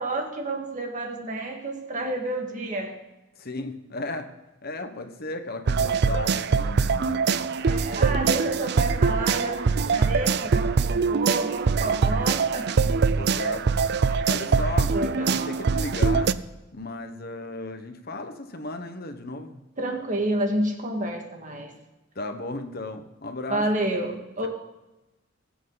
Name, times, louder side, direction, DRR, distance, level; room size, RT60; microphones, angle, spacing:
voice 1, 0.0-3.0 7.5-12.7 14.1-14.5 14.9-15.6 19.8-21.7 23.5-24.5, right 1 dB, 40° right, 3 dB, 1.9 m, -30 dB
voice 2, 3.4-4.3 4.6-7.5 8.2-8.6 12.7-13.6 14.3-14.9 15.2-16.4 16.7-19.6 22.1-23.6, left 2 dB, 50° left, 7 dB, 1.2 m, -35 dB
sound 1, 5.7-16.3, right 5 dB, 55° right, 0.5 m, -23 dB
21.0 x 8.3 x 4.0 m, 1.0 s
head